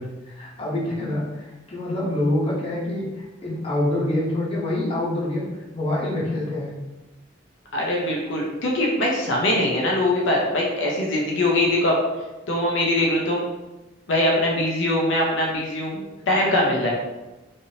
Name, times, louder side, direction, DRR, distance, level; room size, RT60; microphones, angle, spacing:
voice 1, 0.0-5.5 5.7-6.7 16.2-16.9, left 1 dB, 30° left, -6 dB, 0.8 m, -26 dB
voice 2, 7.7-12.0 12.5-13.4 14.1-16.9, left 1 dB, 75° left, -2 dB, 0.6 m, -22 dB
3.3 x 2.6 x 2.7 m, 1.1 s
head